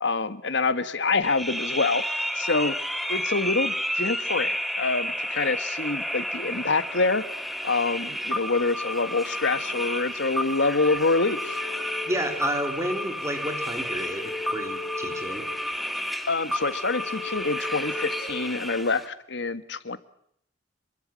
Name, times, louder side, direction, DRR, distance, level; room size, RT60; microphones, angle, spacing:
voice 1, 0.0-2.7 3.1-7.2 7.6-11.6 16.3-20.0, left 3 dB, 65° left, 12 dB, 1.6 m, -26 dB
sound 1, 1.2-19.1, equal, ahead, 1.9 m, -31 dB
sound 2, 10.8-12.7 13.6-15.7 16.5-18.4, left 4 dB, 50° left, 5.2 m, -39 dB
voice 2, 12.1-15.4, right 1 dB, 15° right, 5 dB, 3.5 m, -31 dB
27.0 x 23.0 x 7.7 m, 0.68 s
head